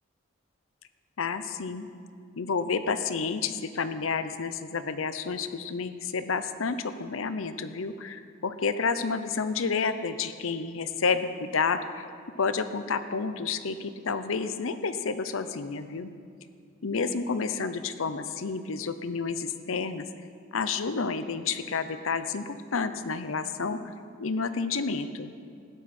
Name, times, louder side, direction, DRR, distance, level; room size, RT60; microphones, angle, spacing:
voice 1, 1.2-1.9 2.4-12.1 12.4-16.1 16.8-20.1 20.5-23.9 24.2-25.3, left 5 dB, 80° left, 11 dB, 0.7 m, -30 dB
16.0 x 12.0 x 4.3 m, 2.3 s
head